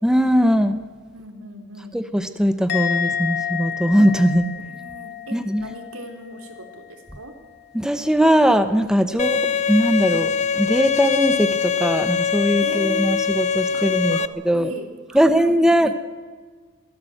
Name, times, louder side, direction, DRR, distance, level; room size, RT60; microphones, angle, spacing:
voice 1, 0.0-0.8 1.9-4.5 5.3-5.7 7.7-9.4 9.7-14.2 14.4-14.7 15.1-15.9, equal, 5° right, 9 dB, 0.9 m, -19 dB
voice 2, 1.1-2.0 4.5-7.3 9.1-9.5 12.6-13.2 13.7-13.9 14.1-15.8, right 1 dB, 85° right, 4 dB, 3.6 m, -38 dB
Musical instrument, 2.7-6.1 6.3-6.8, left 8 dB, 50° left, 2.2 m, -29 dB
Bowed string instrument, 9.2-14.3, left 7 dB, 35° left, 0.7 m, -22 dB
23.0 x 15.5 x 7.9 m, 1.5 s
head